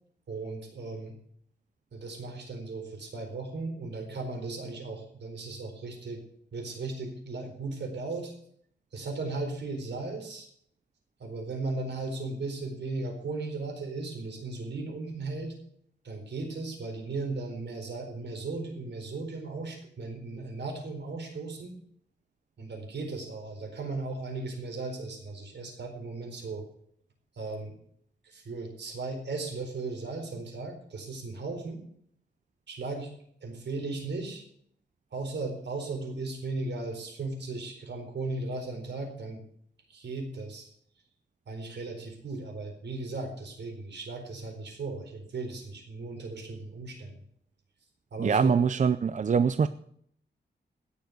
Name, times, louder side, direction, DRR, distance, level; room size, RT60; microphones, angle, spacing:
voice 1, 0.3-1.1 1.9-6.2 6.5-8.3 8.9-10.5 11.2-15.5 16.0-21.8 22.6-26.6 27.4-27.7 28.2-31.8 32.7-33.1 33.4-34.4 35.1-39.4 39.9-40.7 41.5-47.2 48.1-48.6, right 3 dB, 75° right, 4 dB, 4.3 m, -36 dB
voice 2, 48.2-49.7, right 6 dB, 45° right, 12 dB, 0.5 m, -23 dB
17.0 x 7.1 x 8.0 m, 0.64 s
wide cardioid pair, 130°, 18 cm